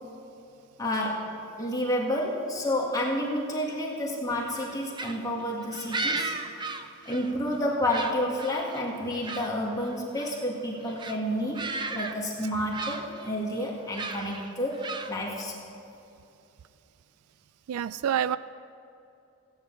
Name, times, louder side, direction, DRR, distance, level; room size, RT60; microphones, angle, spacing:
voice 1, 0.8-6.4 7.1-15.5, left 1 dB, 15° left, -3 dB, 1.8 m, -30 dB
sound 1, 4.5-7.6 7.9-9.5 9.8-10.4 10.8-11.2 11.5-12.2 12.4-13.3 13.9-15.4, right 3 dB, 20° right, 0.6 m, -36 dB
voice 2, 17.7-18.4, right 9 dB, 85° right, 16 dB, 0.3 m, -27 dB
16.0 x 9.6 x 7.4 m, 2.8 s
head